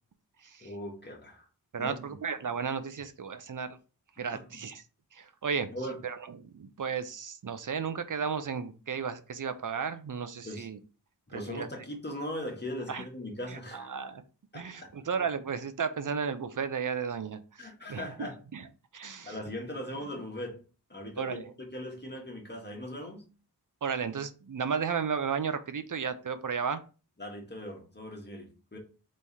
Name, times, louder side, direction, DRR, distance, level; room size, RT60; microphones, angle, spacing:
voice 1, 0.6-1.5 1.8-2.1 4.3-4.4 5.7-6.0 10.4-10.7 11.3-13.9 14.5-14.9 17.6-18.4 19.0-20.6 20.9-23.2 27.2-28.8, left 1 dB, 25° left, 0 dB, 1.5 m, -39 dB
voice 2, 1.7-3.8 4.2-4.8 5.1-5.7 6.0-10.8 11.3-11.7 12.9-13.0 13.5-14.2 14.5-18.7 18.9-19.4 21.2-21.5 23.8-26.8, right 6 dB, 55° right, 11 dB, 0.5 m, -34 dB
3.5 x 3.2 x 4.1 m, 0.35 s
wide cardioid pair, 65°, 39 cm